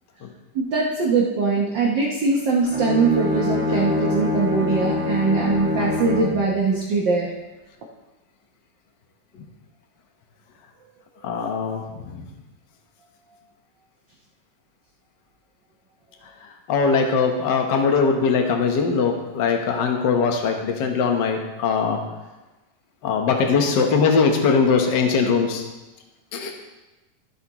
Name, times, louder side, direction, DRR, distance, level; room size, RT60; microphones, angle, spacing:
voice 1, 0.5-7.3, right 4 dB, 60° right, -2 dB, 1.2 m, -21 dB
Bowed string instrument, 2.6-6.5, left 3 dB, 10° right, 0.7 m, -25 dB
voice 2, 11.2-12.2 16.7-22.0 23.0-25.6 26.3-26.5, left 5 dB, 60° left, 3 dB, 1.2 m, -21 dB
14.0 x 8.2 x 3.0 m, 1.1 s
omnidirectional pair, 3.3 m